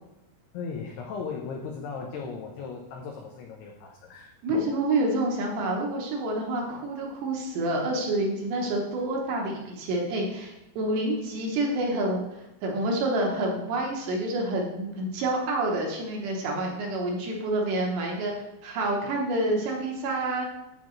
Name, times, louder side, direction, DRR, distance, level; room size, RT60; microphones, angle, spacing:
voice 1, 0.5-4.3, left 5 dB, 90° left, 1 dB, 2.3 m, -37 dB
voice 2, 4.4-20.5, right 1 dB, 75° right, 0 dB, 2.8 m, -28 dB
9.6 x 7.2 x 3.1 m, 0.92 s
omnidirectional pair, 5.7 m